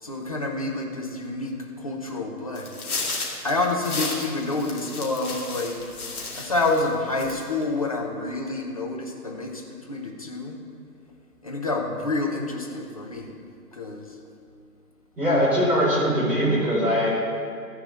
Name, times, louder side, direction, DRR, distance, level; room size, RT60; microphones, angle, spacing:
voice 1, 0.0-2.8 3.4-10.6 11.4-13.3 13.7-14.2, left 2 dB, 20° left, 0 dB, 0.7 m, -28 dB
sound 1, 2.5-6.9 7.2-7.6, left 3 dB, 55° left, 2.3 m, -33 dB
voice 2, 15.2-17.1, equal, 5° right, -13 dB, 2.6 m, -21 dB
14.0 x 4.9 x 7.8 m, 2.3 s
figure-of-eight pair, 150°, 50 cm